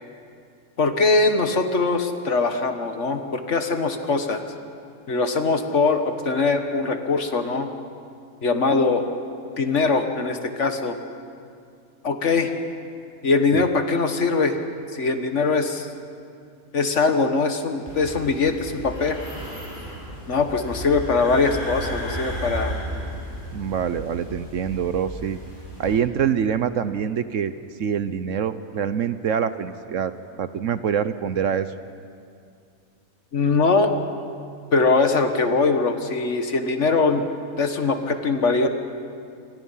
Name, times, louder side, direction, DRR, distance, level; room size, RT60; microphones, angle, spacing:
voice 1, 0.8-4.4 5.1-7.7 8.4-9.1 9.6-11.0 12.0-12.5 13.2-14.6 14.9-15.9 16.7-19.2 20.3-22.7 33.3-33.9 34.7-37.2 37.6-38.7, left 4 dB, 55° left, 6 dB, 1.7 m, -22 dB
sound 1, 17.9-26.0, equal, 35° left, 6.0 m, -34 dB
voice 2, 23.5-25.4 25.8-27.5 27.8-30.1 30.4-31.7, right 8 dB, 65° right, 12 dB, 1.1 m, -25 dB
28.5 x 25.0 x 5.7 m, 2.3 s
omnidirectional pair, 1.5 m